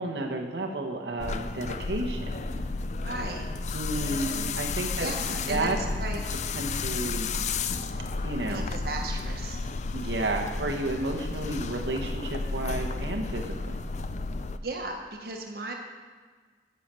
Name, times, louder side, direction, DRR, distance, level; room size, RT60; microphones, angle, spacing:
voice 1, 0.0-2.6 3.7-5.8 6.5-7.3 8.2-8.7 9.9-13.8, right 2 dB, 85° right, 1 dB, 1.3 m, -32 dB
sound 1, 1.2-14.6, left 3 dB, 40° left, 0.4 m, -32 dB
voice 2, 3.0-3.5 4.3-4.6 5.0-6.2 8.5-9.6 14.6-15.7, right 2 dB, 55° right, 2 dB, 1.2 m, -36 dB
10.0 x 6.6 x 7.6 m, 1.5 s
head